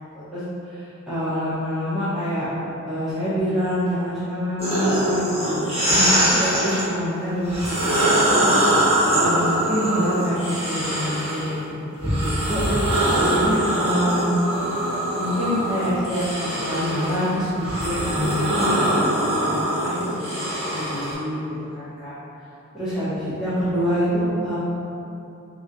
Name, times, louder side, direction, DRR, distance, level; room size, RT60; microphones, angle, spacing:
voice 1, 0.1-2.5 2.9-8.5 9.2-12.6 13.2-14.4 15.1-20.3 20.7-21.4 21.7-22.1 22.7-24.6, equal, ahead, -16 dB, 0.8 m, -26 dB
sound 1, 4.6-6.8 7.4-11.5 12.0-21.1, right 1 dB, 30° right, 1.2 m, -22 dB
4.7 x 2.7 x 2.6 m, 2.8 s
head